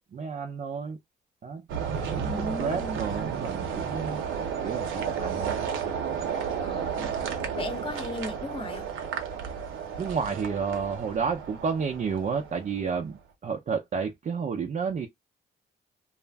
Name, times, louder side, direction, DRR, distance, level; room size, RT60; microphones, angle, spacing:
voice 1, 0.1-1.0 1.4-1.6 2.0-4.2 4.6-5.7 10.0-15.1, right 5 dB, 40° right, 0.5 m, -31 dB
sound 1, 1.7-12.9, right 7 dB, 80° right, 0.7 m, -32 dB
voice 2, 2.2-3.0 6.6-7.2 7.6-8.9, left 1 dB, 25° left, 0.8 m, -36 dB
2.4 x 2.1 x 3.3 m
cardioid pair, 90°, 20 cm